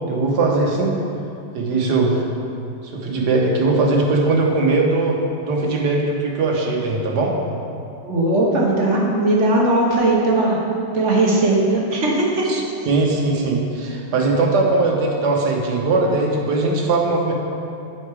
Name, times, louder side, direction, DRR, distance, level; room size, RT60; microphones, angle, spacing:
voice 1, 0.0-1.0 1.5-2.2 2.9-7.4 12.5-12.6 12.9-17.3, right 3 dB, 65° right, 0 dB, 1.6 m, -20 dB
voice 2, 8.0-10.6 10.9-12.4, right 2 dB, 45° right, -3 dB, 1.3 m, -18 dB
7.8 x 5.9 x 4.8 m, 2.6 s
omnidirectional pair, 2.0 m